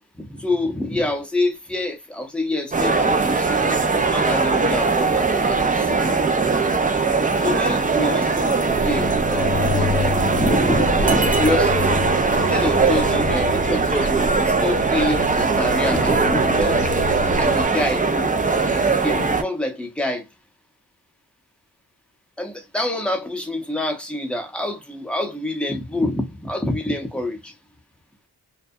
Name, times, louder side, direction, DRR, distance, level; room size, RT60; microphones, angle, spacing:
voice 1, 0.2-3.7 4.1-6.2 7.0-12.0 12.4-16.9 17.4-18.3 19.0-20.2 22.4-27.5, left 1 dB, 5° left, 0.8 m, -26 dB
sound 1, 2.7-19.4, right 4 dB, 20° right, 0.4 m, -20 dB
sound 2, 8.7-17.6, left 4 dB, 85° left, 0.6 m, -29 dB
2.3 x 2.1 x 2.6 m
wide cardioid pair, 70°, 39 cm